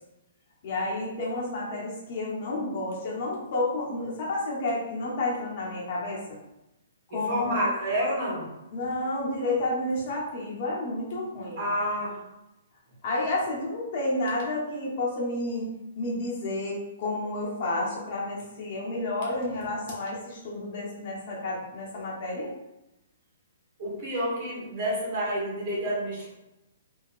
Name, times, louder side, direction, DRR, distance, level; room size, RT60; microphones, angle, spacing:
voice 1, 0.6-6.2 7.1-7.6 8.7-11.6 13.0-15.7 16.0-22.5, left 2 dB, 50° left, -5 dB, 1.0 m, -30 dB
voice 2, 7.1-8.5 11.6-12.1 23.8-26.3, equal, 45° right, -5 dB, 1.5 m, -29 dB
3.0 x 2.7 x 2.4 m, 0.94 s
hypercardioid pair, 135°, 0 cm